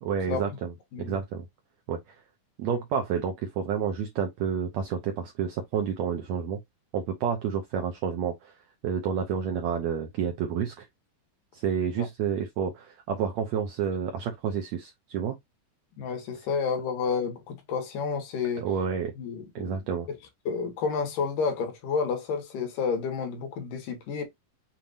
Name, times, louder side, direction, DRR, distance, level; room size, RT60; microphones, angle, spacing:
voice 1, 0.0-0.7 1.0-1.4 1.9-2.2 2.6-6.6 6.9-8.6 8.8-10.9 11.5-15.4 18.6-19.1 19.5-20.1, right 7 dB, 80° right, 1.6 m, -29 dB
voice 2, 16.0-18.7 19.2-19.8 20.5-24.2, left 5 dB, 75° left, 2.8 m, -30 dB
6.9 x 2.9 x 2.5 m
omnidirectional pair, 3.9 m